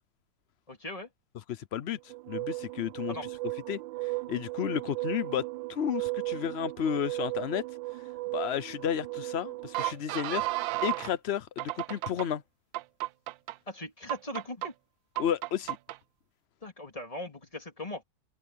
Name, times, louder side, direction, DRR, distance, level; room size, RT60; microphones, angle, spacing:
voice 1, 0.7-1.1 3.1-3.2 13.7-14.7 16.6-18.0, left 1 dB, 20° left, 2.8 m, -39 dB
voice 2, 1.5-3.2 3.7-7.6 8.3-12.4 15.2-15.8, left 9 dB, 85° left, 0.5 m, -32 dB
sound 1, 2.1-11.1 11.6-12.3 12.7-13.6 14.1-14.7 15.2-16.0, right 20 dB, 80° right, 1.3 m, -35 dB
omnidirectional pair, 2.0 m